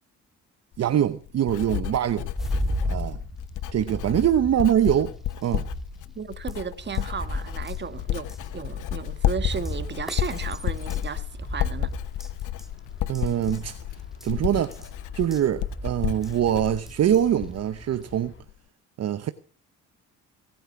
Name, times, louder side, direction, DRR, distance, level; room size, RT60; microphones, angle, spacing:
Writing, 0.7-17.8 18.1-18.5, left 13 dB, 85° left, 1.0 m, -32 dB
voice 1, 0.8-2.3 2.8-3.2 3.7-5.1 5.4-5.6 13.1-13.8 14.2-14.9 15.1-18.3 19.0-19.3, right 10 dB, 55° right, 0.9 m, -23 dB
sound 1, 2.3-18.2, equal, ahead, 2.0 m, -36 dB
voice 2, 6.1-11.9, right 6 dB, 35° right, 1.5 m, -34 dB
Aircraft, 6.8-18.4, left 4 dB, 40° left, 2.4 m, -48 dB
18.5 x 8.9 x 5.9 m
cardioid pair, 90°, 30 cm